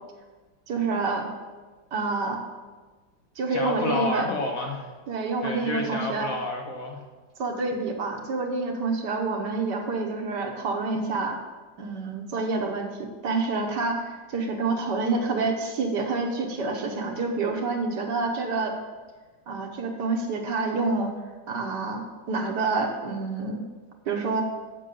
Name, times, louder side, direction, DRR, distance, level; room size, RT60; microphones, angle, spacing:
voice 1, 0.7-1.3 1.9-2.4 3.4-4.3 5.1-6.3 7.4-11.4 11.8-18.7 19.5-21.1 21.5-23.6 24.1-24.4, right 3 dB, 65° right, 3 dB, 1.6 m, -28 dB
voice 2, 3.5-4.9 5.4-7.0, left 2 dB, 50° left, 1 dB, 1.3 m, -30 dB
7.6 x 6.1 x 6.7 m, 1.3 s
omnidirectional pair, 2.1 m